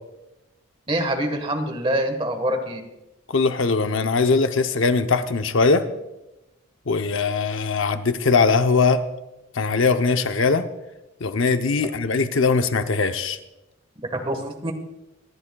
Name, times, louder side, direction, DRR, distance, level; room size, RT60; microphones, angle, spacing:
voice 1, 0.9-2.8 14.1-14.7, right 1 dB, 25° right, 5 dB, 1.3 m, -25 dB
voice 2, 3.3-5.9 6.9-9.0 9.5-10.7 11.2-13.4, left 4 dB, 65° left, 8 dB, 0.7 m, -20 dB
25.5 x 11.0 x 2.3 m, 0.95 s
head